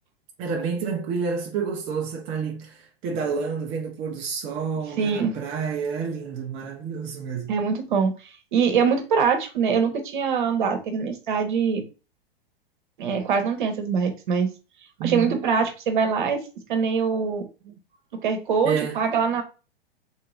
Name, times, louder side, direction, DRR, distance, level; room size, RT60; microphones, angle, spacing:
voice 1, 0.4-7.6 15.0-15.4 17.1-17.2 17.6-17.7 18.6-19.0, right 5 dB, 25° right, 0.5 m, -29 dB
voice 2, 5.0-5.4 7.5-8.1 8.5-11.8 13.0-14.5 15.0-16.4 16.7-17.5 18.2-19.4, right 6 dB, 55° right, 1.0 m, -23 dB
3.5 x 2.9 x 2.4 m
figure-of-eight pair, 100°, 30 cm